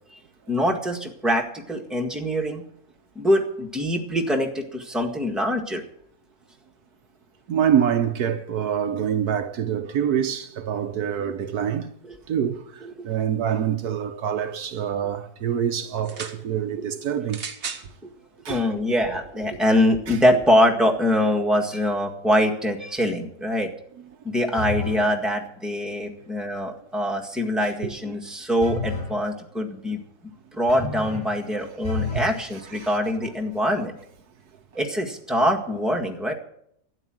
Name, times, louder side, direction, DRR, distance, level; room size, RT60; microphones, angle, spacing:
voice 1, 0.5-2.6 3.1-5.8 12.0-12.2 12.8-13.1 16.8-16.9 18.0-18.1 18.5-23.7 24.2-30.0 30.5-33.9 34.7-36.3, equal, ahead, 1.6 m, -24 dB
voice 2, 7.5-11.9 12.3-12.6 13.0-17.4 18.4-18.6 20.1-20.2 27.8-27.9 32.1-32.2, right 9 dB, 70° right, 1.4 m, -25 dB
sound 1, 16.0-16.4 17.3-17.9 18.8-18.9, right 5 dB, 45° right, 1.3 m, -35 dB
sound 2, 24.6-25.1 28.6-29.2 30.7-31.3 31.8-32.4, left 4 dB, 30° left, 6.7 m, -30 dB
12.5 x 9.7 x 7.6 m
omnidirectional pair, 1.7 m